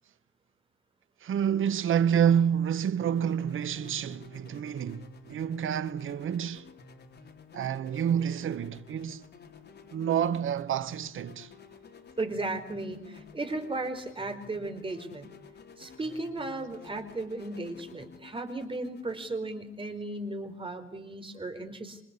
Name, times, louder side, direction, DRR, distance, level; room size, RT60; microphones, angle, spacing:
voice 1, 1.2-6.7 7.5-9.2 9.9-11.5, right 8 dB, 80° right, 1.2 m, -28 dB
sound 1, 2.9-20.7, left 5 dB, 55° left, 3.8 m, -52 dB
voice 2, 9.6-10.0 11.4-11.8 12.2-15.3 15.8-22.0, right 2 dB, 25° right, 4.6 m, -36 dB
27.0 x 26.0 x 8.4 m
wide cardioid pair, 140°, 20 cm